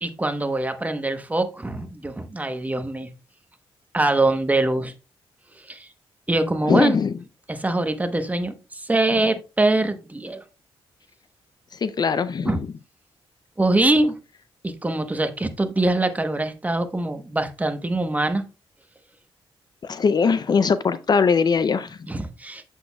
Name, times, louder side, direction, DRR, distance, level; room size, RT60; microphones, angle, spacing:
voice 1, 0.0-3.1 3.9-4.9 5.6-5.9 6.3-7.0 7.5-10.4 12.5-12.6 13.6-14.1 14.6-18.4 22.1-22.6, right 2 dB, 15° right, 0.9 m, -23 dB
voice 2, 6.7-7.1 11.7-12.6 19.8-22.0, left 5 dB, 45° left, 0.4 m, -21 dB
7.6 x 6.3 x 2.2 m
cardioid pair, 85°, 10 cm